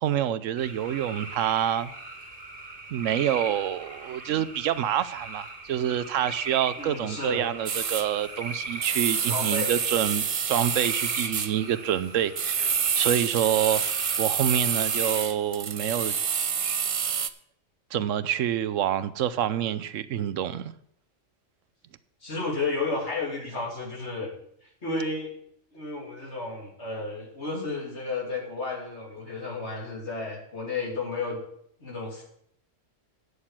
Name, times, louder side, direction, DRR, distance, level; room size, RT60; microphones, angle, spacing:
voice 1, 0.0-1.9 2.9-13.8 14.2-16.1 16.6-16.9 17.9-20.7, right 10 dB, 80° right, 15 dB, 1.0 m, -27 dB
sound 1, 0.6-15.2, right 3 dB, 45° right, 2.0 m, -40 dB
voice 2, 6.8-7.5 9.3-9.7 22.2-24.3 24.8-25.3 25.7-31.4 31.8-32.2, left 3 dB, 60° left, -2 dB, 3.3 m, -32 dB
sound 2, 7.7-8.1 8.8-11.5 12.4-17.3, right 7 dB, 65° right, 0.3 m, -27 dB
9.6 x 6.7 x 7.3 m, 0.69 s
omnidirectional pair, 1.3 m